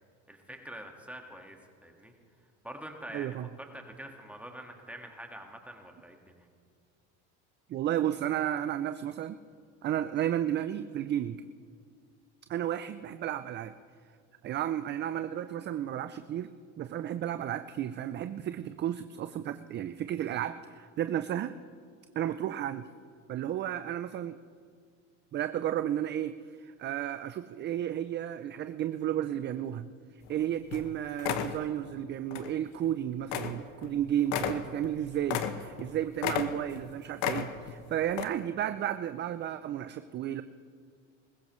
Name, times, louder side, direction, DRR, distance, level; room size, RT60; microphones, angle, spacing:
voice 1, 0.3-2.1 2.6-6.5, right 1 dB, 5° right, 3 dB, 1.7 m, -46 dB
voice 2, 3.1-3.5 7.7-9.4 9.8-11.4 12.5-13.7 14.4-16.5 16.8-21.5 22.2-22.9 23.3-24.4 25.3-29.9 30.3-40.4, right 11 dB, 30° right, 11 dB, 0.4 m, -33 dB
sound 1, 30.3-30.4 30.7-30.9 31.2-31.6 32.3-32.5 32.8-32.9 33.3-33.6 33.8-33.9 34.2-35.9 36.2-36.8 37.2-37.8 38.1-38.2, left 9 dB, 70° left, 1.2 m, -33 dB
21.0 x 15.0 x 3.1 m, 2.1 s
supercardioid pair, 105°, 37 cm